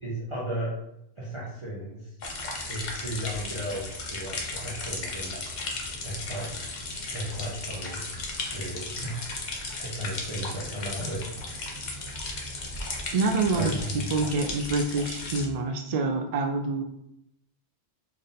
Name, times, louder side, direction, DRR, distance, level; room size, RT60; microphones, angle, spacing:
voice 1, 0.0-0.7 1.2-2.1 2.7-5.4 6.0-6.5 7.1-8.0 8.5-9.2 9.8-11.3 13.5-14.1, right 1 dB, 30° right, -6 dB, 0.7 m, -35 dB
sound 1, 2.2-15.5, left 2 dB, 50° left, 0.7 m, -35 dB
voice 2, 13.1-13.7 14.1-16.8, right 3 dB, 65° right, 4 dB, 0.4 m, -26 dB
3.5 x 2.6 x 4.0 m, 0.82 s
omnidirectional pair, 1.2 m